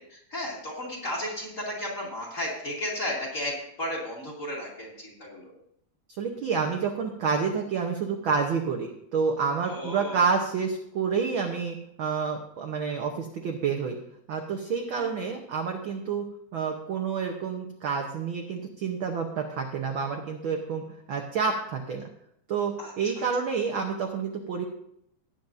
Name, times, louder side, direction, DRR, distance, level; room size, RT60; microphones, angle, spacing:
voice 1, 0.0-5.5 9.7-10.3 15.0-15.1 22.8-23.2, left 1 dB, 25° left, -2 dB, 2.8 m, -34 dB
voice 2, 6.2-14.0 14.3-16.2 16.5-20.8 21.1-22.0 22.5-24.6, right 5 dB, 70° right, 2 dB, 1.2 m, -29 dB
18.5 x 9.0 x 2.7 m, 0.73 s
omnidirectional pair, 3.5 m